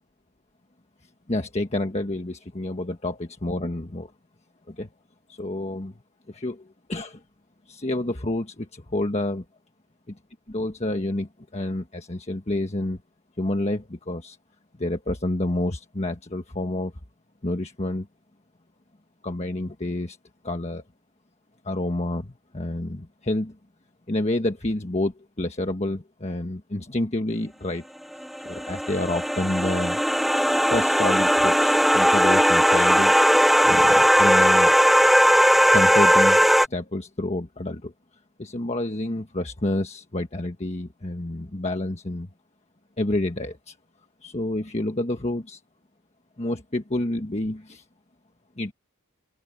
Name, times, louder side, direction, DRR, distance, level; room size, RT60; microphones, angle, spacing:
voice 1, 1.3-4.1 4.7-4.9 5.3-5.9 6.3-7.2 7.7-9.4 10.1-10.2 10.5-13.0 13.4-14.4 14.8-16.9 17.4-18.1 19.2-20.2 20.4-20.8 21.6-23.6 24.1-27.8 28.4-30.0 30.7-33.1 33.6-34.7 35.7-36.4 36.7-37.9 38.4-42.3 43.0-43.7 44.2-45.6 46.4-47.8 48.6-48.7, left 1 dB, 30° left, 1.4 m, -28 dB
sound 1, 28.2-36.7, equal, ahead, 0.7 m, -18 dB
open air
head